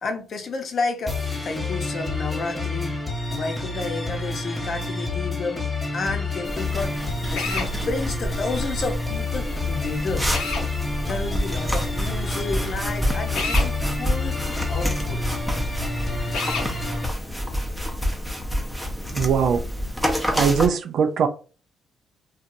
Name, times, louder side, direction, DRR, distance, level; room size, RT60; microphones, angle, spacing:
voice 1, 0.0-3.0 3.3-7.0 7.3-10.3 11.1-14.4 14.7-15.2, left 4 dB, 50° left, 0.7 m, -31 dB
sound 1, 1.1-17.0, left 2 dB, 20° left, 1.1 m, -29 dB
sound 2, 6.4-20.7, equal, ahead, 0.7 m, -28 dB
Drill, 7.3-7.7 10.3-10.7 13.3-13.7 16.3-16.7, left 4 dB, 90° left, 0.7 m, -28 dB
voice 2, 19.1-19.6 20.3-21.3, right 6 dB, 65° right, 0.4 m, -21 dB
2.8 x 2.3 x 2.6 m
cardioid pair, 90°, 0 cm